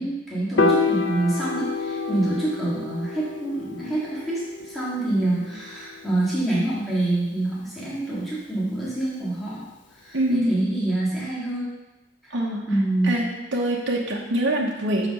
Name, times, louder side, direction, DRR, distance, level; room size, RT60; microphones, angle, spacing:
voice 1, 0.0-9.6 10.0-11.6 12.2-12.3 12.7-13.3, right 2 dB, ahead, -9 dB, 1.9 m, -26 dB
Piano, 0.6-6.9, left 4 dB, 75° left, 0.5 m, -28 dB
voice 2, 10.1-10.6 12.3-12.7 13.1-15.1, right 1 dB, 75° right, -2 dB, 1.0 m, -24 dB
5.9 x 5.0 x 6.3 m, 1.0 s
head